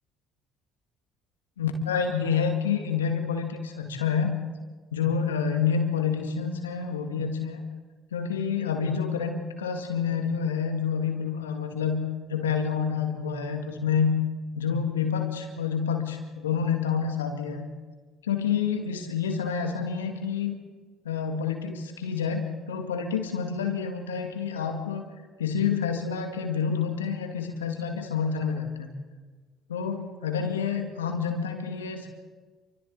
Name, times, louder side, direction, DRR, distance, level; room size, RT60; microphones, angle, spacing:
voice 1, 1.6-4.3 4.9-7.6 8.1-12.0 12.3-14.1 14.5-17.7 18.2-20.5 21.0-25.0 25.4-28.9 29.7-32.1, left 6 dB, 85° left, 4 dB, 2.1 m, -28 dB
29.0 x 24.5 x 4.1 m, 1.4 s
figure-of-eight pair, 50°, 0 cm